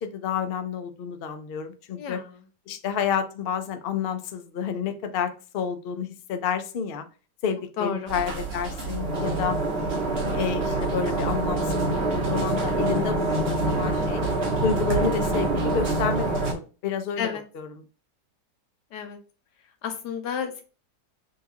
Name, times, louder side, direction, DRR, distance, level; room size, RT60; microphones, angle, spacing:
voice 1, 0.0-2.2 2.7-7.1 7.4-9.6 10.3-14.2 14.6-17.3 17.5-17.7, left 7 dB, 70° left, 7 dB, 0.5 m, -30 dB
voice 2, 2.0-2.3 7.8-8.1 17.2-17.4 18.9-19.2 19.8-20.6, left 7 dB, 85° left, 6 dB, 1.4 m, -31 dB
sound 1, 8.1-16.5, right 2 dB, 45° right, 1.0 m, -26 dB
6.3 x 2.3 x 2.8 m, 0.35 s
omnidirectional pair, 1.8 m